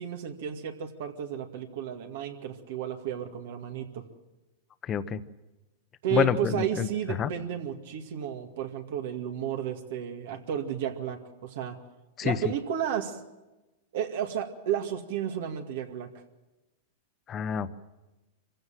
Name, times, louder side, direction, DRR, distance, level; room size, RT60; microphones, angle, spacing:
voice 1, 0.0-4.0 6.0-11.8 12.2-13.2 13.9-16.1, right 9 dB, 70° right, 4 dB, 2.1 m, -32 dB
voice 2, 4.8-5.2 6.1-6.9 7.2-7.3 12.2-12.4 17.3-17.7, left 8 dB, 25° left, 12 dB, 1.0 m, -27 dB
24.5 x 16.0 x 7.6 m, 1.0 s
hypercardioid pair, 130°, 0 cm